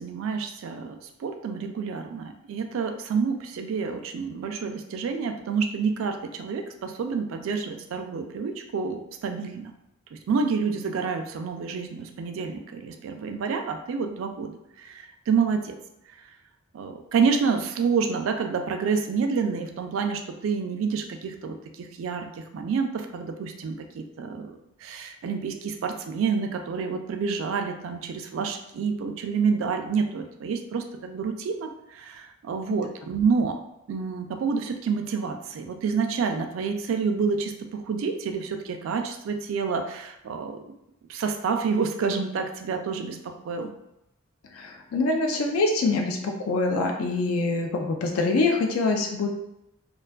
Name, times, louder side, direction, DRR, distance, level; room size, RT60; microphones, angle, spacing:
voice 1, 0.0-9.7 10.1-15.8 16.7-33.6 33.9-40.7 41.1-43.7, right 5 dB, 70° right, 5 dB, 0.3 m, -28 dB
voice 2, 44.5-49.3, left 3 dB, 80° left, 2 dB, 0.3 m, -25 dB
2.4 x 2.3 x 2.2 m, 0.85 s
head